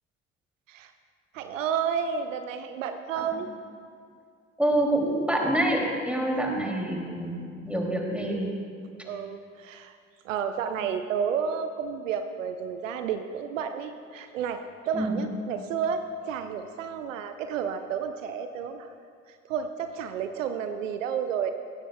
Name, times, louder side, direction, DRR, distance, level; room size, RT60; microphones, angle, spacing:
voice 1, 1.3-3.5 6.6-6.7 9.0-10.0 10.2-18.9 19.3-21.5, right 7 dB, 80° right, 8 dB, 0.5 m, -31 dB
voice 2, 4.6-8.5 14.9-15.2, right 1 dB, 5° right, 0 dB, 2.5 m, -26 dB
16.0 x 14.5 x 2.2 m, 2.3 s
figure-of-eight pair, 45°, 38 cm